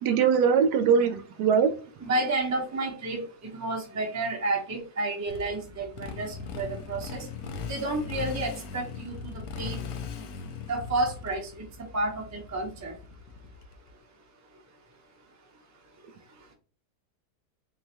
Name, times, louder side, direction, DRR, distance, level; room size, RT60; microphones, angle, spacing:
voice 1, 0.0-1.7, right 6 dB, 80° right, 8 dB, 1.2 m, -22 dB
voice 2, 2.0-3.2 3.5-7.2 7.7-9.8 10.7-11.5 11.9-12.9, right 2 dB, 25° right, 1 dB, 0.4 m, -30 dB
Motorcycle, 5.3-13.9, left 6 dB, 70° left, 1.0 m, -39 dB
3.8 x 2.9 x 2.8 m, 0.36 s
omnidirectional pair, 1.8 m